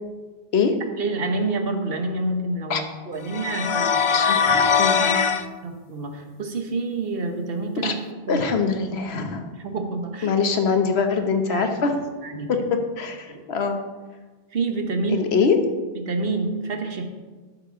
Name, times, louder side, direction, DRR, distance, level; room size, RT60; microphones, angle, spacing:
voice 1, 1.0-4.7 5.6-8.0 8.3-8.4 9.6-10.3 11.5-11.7 12.2-12.5 13.3-13.4 14.5-15.3 16.0-17.1, right 3 dB, 70° right, 5 dB, 1.3 m, -28 dB
sound 1, 3.3-5.4, left 6 dB, 50° left, 0.3 m, -20 dB
voice 2, 4.1-5.4 7.8-7.9 8.3-9.5 10.2-11.9 12.5-12.6 13.0-13.8 15.1-15.6, left 5 dB, 90° left, 6 dB, 1.2 m, -23 dB
12.5 x 6.6 x 3.7 m, 1.3 s
omnidirectional pair, 1.0 m